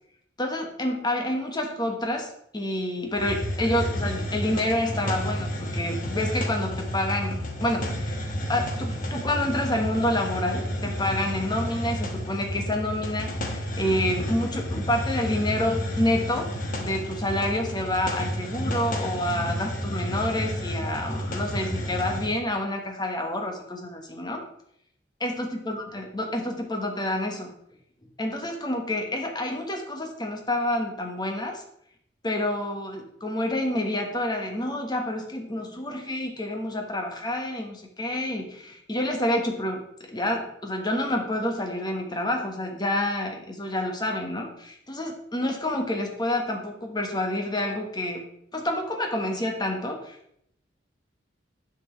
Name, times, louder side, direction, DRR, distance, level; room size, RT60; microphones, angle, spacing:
voice 1, 0.4-2.3 2.5-8.2 8.5-16.5 16.8-24.4 25.2-27.5 28.2-31.6 32.2-48.2 48.5-50.1, left 1 dB, 25° left, 2 dB, 1.2 m, -28 dB
Hiss, 3.1-22.4, equal, 50° left, 1.3 m, -31 dB
9.9 x 6.0 x 3.1 m, 0.72 s
head